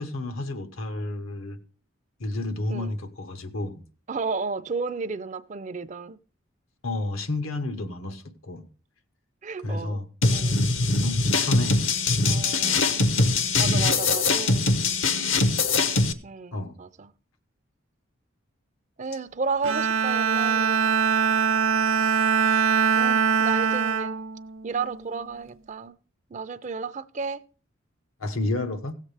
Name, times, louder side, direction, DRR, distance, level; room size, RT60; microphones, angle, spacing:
voice 1, 0.0-1.6 2.2-3.8 6.8-8.7 9.6-10.1 11.0-11.8 16.5-16.8 28.2-28.9, left 2 dB, 85° left, 1.1 m, -31 dB
voice 2, 4.1-6.2 9.4-10.0 10.3-10.6 12.3-13.0 13.6-14.6 16.2-17.1 19.0-20.9 23.0-24.2 24.6-26.0 26.3-27.4, right 4 dB, 35° right, 0.4 m, -32 dB
sound 1, 10.2-16.1, left 3 dB, 70° left, 0.9 m, -22 dB
Bowed string instrument, 19.6-25.2, right 6 dB, 80° right, 0.7 m, -23 dB
16.5 x 7.4 x 3.3 m
head